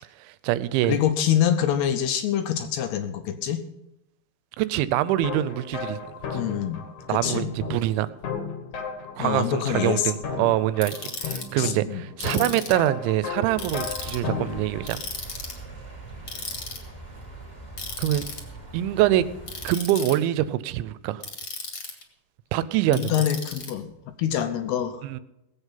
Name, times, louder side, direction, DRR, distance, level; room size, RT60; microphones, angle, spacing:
voice 1, 0.2-1.0 4.6-6.0 7.1-8.1 9.2-15.0 18.0-18.3 18.7-19.3 19.6-21.2 22.5-23.1 25.0-25.2, right 14 dB, 90° right, 3.0 m, -24 dB
voice 2, 0.9-3.7 6.3-7.5 9.2-10.1 11.6-12.0 22.9-25.0, left 10 dB, 75° left, 2.6 m, -25 dB
sound 1, 5.1-14.9, left 5 dB, 55° left, 2.3 m, -35 dB
Ratchet pawl, 10.8-11.4 12.2-12.9 13.6-14.2 14.9-15.6 16.3-16.8 17.8-18.4 19.5-20.1 21.2-22.0 22.9-23.7, left 4 dB, 40° left, 2.0 m, -35 dB
sound 2, 13.5-19.7, right 2 dB, 15° right, 1.8 m, -41 dB
19.0 x 8.1 x 5.7 m
omnidirectional pair, 5.3 m